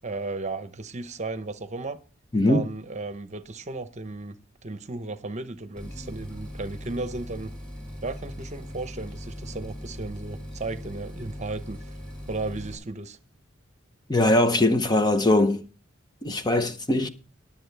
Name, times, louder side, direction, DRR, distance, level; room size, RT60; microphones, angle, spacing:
voice 1, 0.0-2.0 2.5-4.4 4.6-7.5 8.0-11.8 12.3-13.2, right 2 dB, 35° right, 0.9 m, -34 dB
voice 2, 2.3-2.6 14.1-15.6 16.2-17.1, left 1 dB, 20° left, 0.8 m, -21 dB
sound 1, 5.8-12.8, equal, 5° left, 6.8 m, -39 dB
20.5 x 7.2 x 3.4 m
head